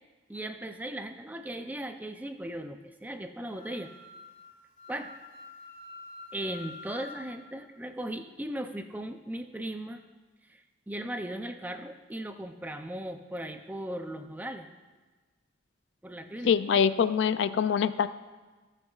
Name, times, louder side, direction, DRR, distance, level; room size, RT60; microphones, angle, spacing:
voice 1, 0.3-3.9 4.9-5.1 6.3-10.0 10.5-10.6 10.9-14.7 16.0-16.5, right 1 dB, 10° right, 7 dB, 0.4 m, -37 dB
Wind instrument woodwind instrument, 3.5-7.2, left 3 dB, 80° left, 2.9 m, -47 dB
voice 2, 16.4-18.1, left 7 dB, 65° left, 13 dB, 0.3 m, -24 dB
19.5 x 6.6 x 2.4 m, 1.3 s
head